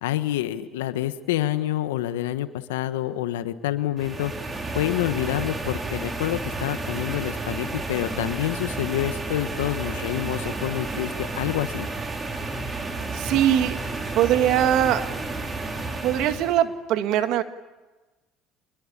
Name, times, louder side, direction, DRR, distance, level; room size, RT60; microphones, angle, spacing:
voice 1, 0.0-4.3 4.7-11.9, left 13 dB, 85° left, 11 dB, 1.3 m, -27 dB
sound 1, 4.0-16.6, right 2 dB, 25° right, 4.6 m, -31 dB
voice 2, 13.1-13.8 14.2-15.1 16.0-17.4, right 11 dB, 65° right, 9 dB, 1.8 m, -21 dB
28.0 x 21.5 x 8.8 m, 1.2 s
hypercardioid pair, 75°, 0 cm